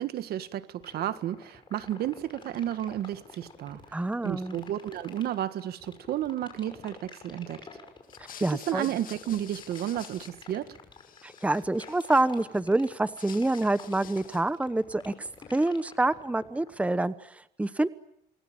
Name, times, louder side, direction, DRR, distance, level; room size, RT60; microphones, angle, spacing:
voice 1, 0.0-7.7 8.5-10.8, right 12 dB, 70° right, 1.6 m, -32 dB
sound 1, 0.8-16.8, left 4 dB, 30° left, 5.5 m, -48 dB
voice 2, 3.9-4.6 8.4-8.9 11.2-17.9, right 2 dB, 10° right, 1.0 m, -27 dB
sound 2, 8.0-10.7 10.9-12.6 13.0-14.6, left 9 dB, 55° left, 2.2 m, -49 dB
28.5 x 20.5 x 8.9 m
cardioid pair, 110°, 17 cm